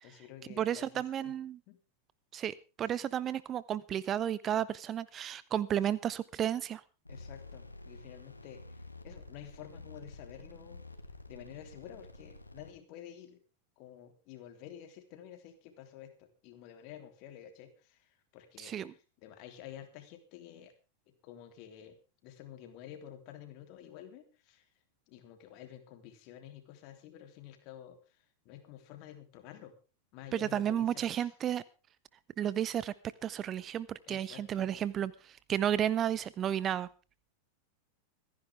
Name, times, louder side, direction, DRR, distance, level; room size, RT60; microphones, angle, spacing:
voice 1, 0.0-1.4 1.7-1.8 2.8-2.9 7.1-10.9 11.3-13.4 13.8-20.7 21.1-24.7 25.1-29.7 30.1-31.3 34.1-34.7, left 10 dB, 45° left, 7 dB, 3.2 m, -51 dB
voice 2, 0.6-1.6 2.3-6.8 18.6-18.9 30.3-31.6 32.4-32.9 33.2-36.9, right 10 dB, 30° right, 19 dB, 0.6 m, -32 dB
sound 1, 7.0-12.7, left 2 dB, 85° left, 2.6 m, -50 dB
26.0 x 10.5 x 3.5 m, 0.32 s
figure-of-eight pair, 90°, 0 cm